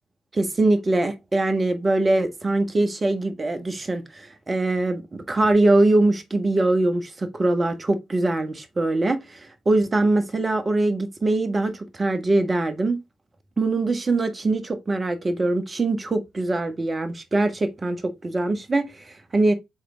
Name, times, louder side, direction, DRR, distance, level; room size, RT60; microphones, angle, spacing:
voice 1, 0.3-13.0 13.6-19.5, right 2 dB, 30° right, 1.6 m, -22 dB
6.6 x 3.9 x 3.8 m
figure-of-eight pair, 45°, 0 cm